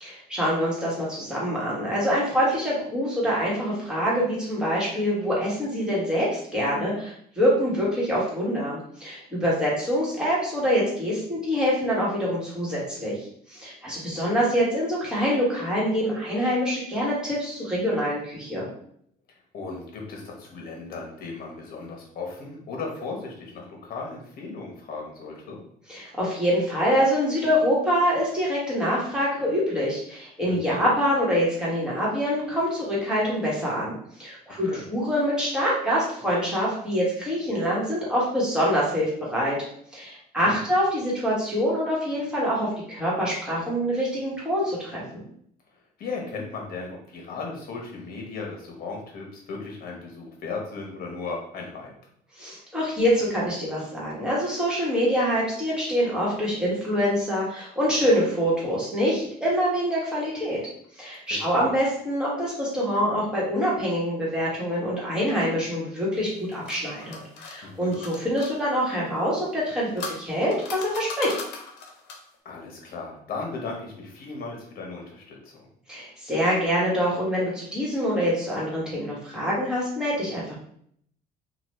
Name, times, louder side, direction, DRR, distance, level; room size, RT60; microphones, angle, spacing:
voice 1, 0.0-13.2 13.5-18.7 25.9-39.6 39.9-45.0 52.4-60.6 61.0-71.3 75.9-80.6, equal, 5° right, -7 dB, 1.5 m, -25 dB
voice 2, 19.3-25.6 30.5-30.9 34.7-34.9 40.4-40.6 46.0-51.9 61.3-61.7 67.6-68.0 72.4-75.7, left 4 dB, 60° left, 0 dB, 1.1 m, -36 dB
sound 1, 66.2-68.5 69.5-72.3, left 4 dB, 90° left, 0.6 m, -39 dB
3.0 x 2.5 x 3.1 m, 0.66 s
cardioid pair, 110°, 17 cm